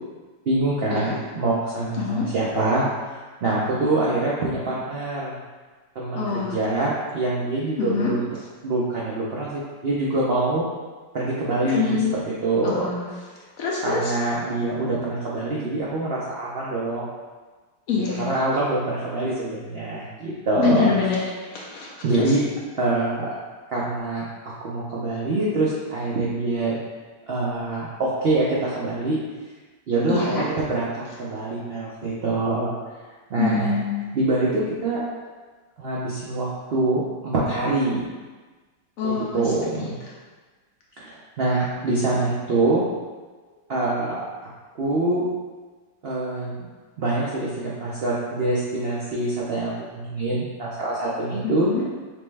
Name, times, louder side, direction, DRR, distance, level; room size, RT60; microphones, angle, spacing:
voice 1, 0.5-2.9 3.4-5.4 5.9-8.3 8.6-10.7 11.1-12.9 13.8-17.1 18.2-20.9 22.0-22.4 22.8-23.3 23.7-26.8 27.3-29.2 29.9-32.7 33.3-33.7 34.1-35.0 35.8-38.0 39.0-39.9 41.0-42.9 43.7-44.3 44.8-45.2 46.0-46.6 47.0-51.7, right 2 dB, 75° right, -6 dB, 0.5 m, -25 dB
voice 2, 2.0-2.3 6.2-6.6 7.8-8.1 11.7-12.1 12.6-13.1 13.6-14.1 17.9-18.3 20.6-22.3 30.1-30.5 33.4-34.2 39.0-39.4 39.8-39.9 51.6-51.8, left 5 dB, 65° left, -3 dB, 0.9 m, -25 dB
6.2 x 2.1 x 3.3 m, 1.3 s
omnidirectional pair, 1.9 m